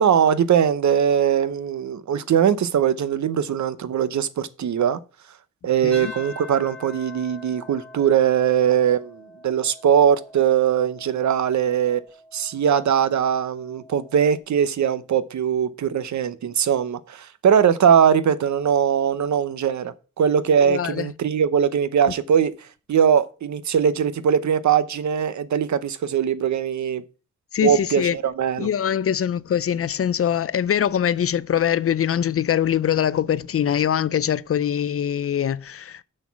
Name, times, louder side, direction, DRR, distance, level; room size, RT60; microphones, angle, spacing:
voice 1, 0.0-5.0 5.6-12.0 12.3-27.0 27.6-28.7, right 8 dB, 70° right, 0.7 m, -21 dB
sound 1, 5.9-14.4, left 2 dB, 5° left, 3.2 m, -44 dB
voice 2, 20.6-21.1 27.5-28.2 28.6-36.0, left 9 dB, 50° left, 0.5 m, -23 dB
6.5 x 6.0 x 7.0 m
wide cardioid pair, 95°, 30 cm